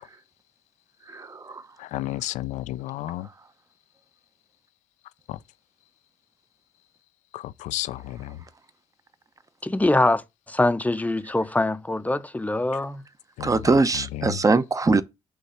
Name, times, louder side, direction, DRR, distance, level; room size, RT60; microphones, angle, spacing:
voice 1, 1.1-1.6 13.4-15.0, right 3 dB, 25° right, 0.9 m, -22 dB
voice 2, 1.8-3.3 5.3-5.4 7.3-8.4 13.4-13.5 14.2-14.4, left 15 dB, 75° left, 0.4 m, -32 dB
voice 3, 9.6-13.0, left 2 dB, 10° left, 0.7 m, -23 dB
8.1 x 3.2 x 5.7 m
supercardioid pair, 55°, 12 cm